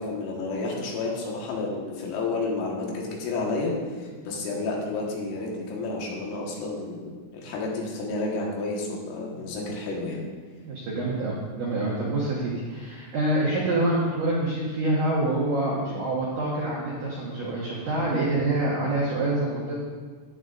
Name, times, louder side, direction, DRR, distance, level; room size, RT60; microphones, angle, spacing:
voice 1, 0.0-10.2, left 3 dB, 80° left, -2 dB, 4.0 m, -31 dB
voice 2, 10.7-19.8, right 2 dB, 85° right, -5 dB, 1.8 m, -26 dB
10.5 x 9.2 x 2.5 m, 1.5 s
omnidirectional pair, 5.8 m